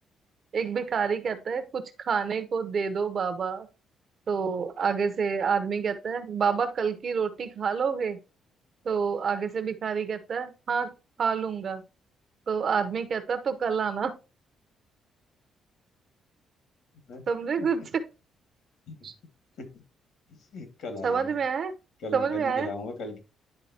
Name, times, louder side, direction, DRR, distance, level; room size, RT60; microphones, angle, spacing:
voice 1, 0.5-3.7 4.3-8.2 8.8-11.8 12.5-14.1 17.3-18.0 19.0-19.1 21.0-21.7 22.1-22.7, right 6 dB, 40° right, 0.7 m, -28 dB
voice 2, 20.3-21.4 22.0-23.2, left 2 dB, 65° left, 1.9 m, -38 dB
10.5 x 3.7 x 2.8 m
cardioid pair, 155°, 0 cm